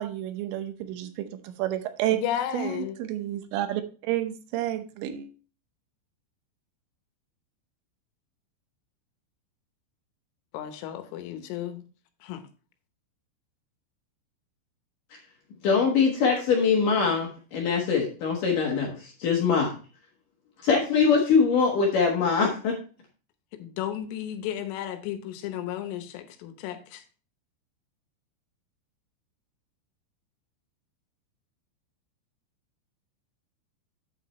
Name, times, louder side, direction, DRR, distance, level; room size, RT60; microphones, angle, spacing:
voice 1, 0.0-2.2 2.5-5.3, right 12 dB, 85° right, 3.4 m, -30 dB
voice 2, 2.1-3.0 10.5-11.8 12.2-12.4 23.6-27.0, left 11 dB, 80° left, 3.4 m, -33 dB
voice 3, 15.6-19.7 20.6-22.7, left 5 dB, 60° left, 2.3 m, -23 dB
8.9 x 7.5 x 3.1 m
omnidirectional pair, 5.7 m